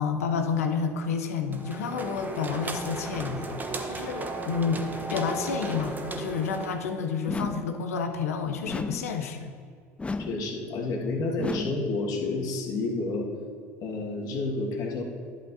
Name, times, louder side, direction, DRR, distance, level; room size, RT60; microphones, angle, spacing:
voice 1, 0.0-9.5, left 5 dB, 80° left, 6 dB, 0.7 m, -30 dB
sound 1, 1.5-7.0, right 2 dB, 20° right, 1.0 m, -35 dB
sound 2, 7.3-7.8 8.7-9.2 10.0-10.5 11.4-11.9, left 3 dB, 15° left, 0.3 m, -33 dB
voice 2, 10.2-13.3 13.8-15.0, left 3 dB, 55° left, -1 dB, 1.7 m, -30 dB
11.5 x 8.0 x 2.7 m, 2.1 s
hypercardioid pair, 70°, 8 cm